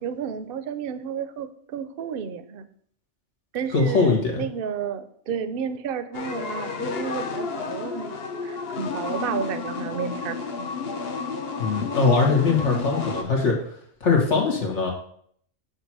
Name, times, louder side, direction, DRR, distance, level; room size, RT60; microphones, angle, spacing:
voice 1, 0.0-2.6 3.5-8.2 8.4-10.7, right 7 dB, 60° right, 11 dB, 0.7 m, -31 dB
voice 2, 3.7-4.4 11.6-13.6 14.0-14.9, left 4 dB, 85° left, 0 dB, 1.9 m, -21 dB
sound 1, 6.1-13.2, left 5 dB, 60° left, 1.0 m, -31 dB
7.7 x 2.9 x 6.0 m, 0.64 s
omnidirectional pair, 1.2 m